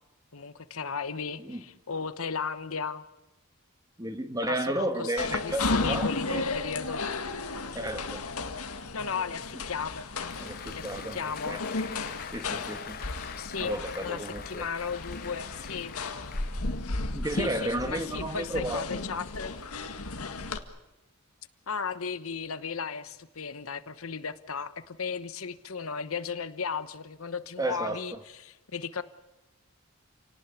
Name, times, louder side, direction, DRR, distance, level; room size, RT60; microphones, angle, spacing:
voice 1, 0.3-3.0 4.4-7.0 8.9-10.1 10.7-11.6 13.4-16.0 17.3-19.5 21.7-29.0, left 5 dB, 70° left, 13 dB, 1.1 m, -35 dB
voice 2, 4.0-6.4 7.7-8.2 10.4-11.6 12.3-13.0 13.6-14.6 17.1-18.9 27.6-28.0, right 1 dB, 15° right, 8 dB, 1.8 m, -33 dB
sound 1, 5.2-20.6, left 3 dB, 85° left, 1.9 m, -34 dB
Applause, 10.0-17.1, left 7 dB, 45° left, 1.0 m, -45 dB
29.0 x 18.5 x 8.3 m, 1.0 s
head